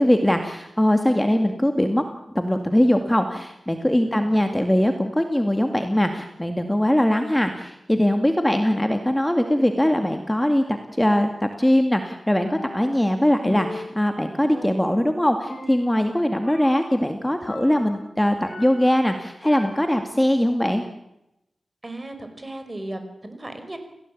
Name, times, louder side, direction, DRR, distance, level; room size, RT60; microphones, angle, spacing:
voice 1, 0.0-2.0 2.3-20.8, left 1 dB, 10° left, 6 dB, 2.2 m, -21 dB
Percussion, 12.4-13.1 13.4-15.2 15.4-16.1 16.4-17.0 17.4-19.0 19.4-20.1, left 2 dB, 50° left, 6.2 m, -38 dB
voice 2, 21.8-23.8, right 1 dB, 25° right, 8 dB, 5.2 m, -36 dB
29.0 x 17.0 x 8.7 m, 0.86 s
wide cardioid pair, 90°, 0 cm